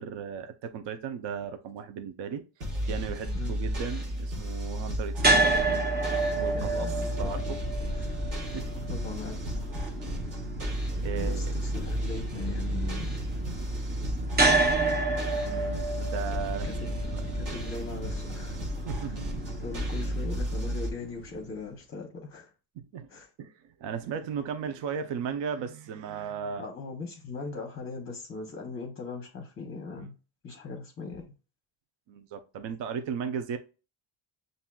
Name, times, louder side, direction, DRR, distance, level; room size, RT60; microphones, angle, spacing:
voice 1, 0.0-2.4 2.8-5.6 6.4-6.9 7.2-7.6 7.9-8.1 8.5-8.7 11.0-11.5 15.4-17.3 18.9-19.3 22.8-23.1 23.4-26.7 32.1-33.6, right 7 dB, 60° right, 0.6 m, -36 dB
sound 1, 2.6-20.9, equal, 40° right, 1.2 m, -33 dB
sound 2, 5.2-21.3, right 2 dB, 20° right, 0.6 m, -31 dB
voice 2, 6.5-7.4 8.0-8.2 8.9-9.5 11.1-13.3 16.6-16.9 17.2-18.6 19.1-19.2 19.6-22.5 23.1-23.3 26.6-30.1 30.4-31.2, left 3 dB, 30° left, 0.8 m, -40 dB
7.1 x 2.7 x 2.2 m
cardioid pair, 145°, 48 cm